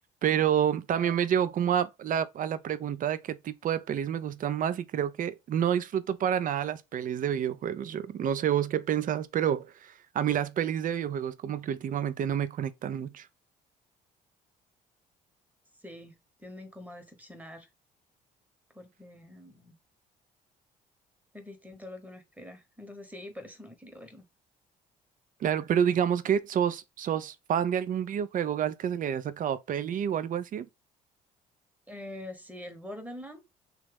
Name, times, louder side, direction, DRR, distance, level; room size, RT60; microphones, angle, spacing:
voice 1, 0.2-13.3 25.4-30.7, right 9 dB, 45° right, 0.4 m, -28 dB
voice 2, 15.8-17.7 18.7-19.8 21.3-24.3 31.9-33.4, left 1 dB, 10° right, 1.0 m, -45 dB
3.0 x 2.3 x 3.3 m
hypercardioid pair, 60°, 19 cm